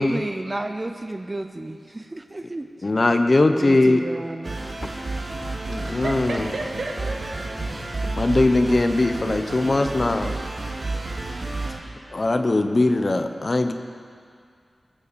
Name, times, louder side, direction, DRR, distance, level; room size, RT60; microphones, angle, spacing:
voice 1, 0.0-2.9 3.5-4.6, right 2 dB, 25° right, 7 dB, 0.6 m, -32 dB
voice 2, 2.8-4.0 5.7-6.5 8.2-10.3 12.1-13.7, left 2 dB, 40° left, 7 dB, 0.9 m, -20 dB
sound 1, 4.4-11.8, right 2 dB, 60° right, 2.2 m, -31 dB
voice 3, 5.8-7.6, right 2 dB, 85° right, 0 dB, 1.8 m, -32 dB
21.0 x 7.6 x 6.9 m, 2.2 s
wide cardioid pair, 95°, 0 cm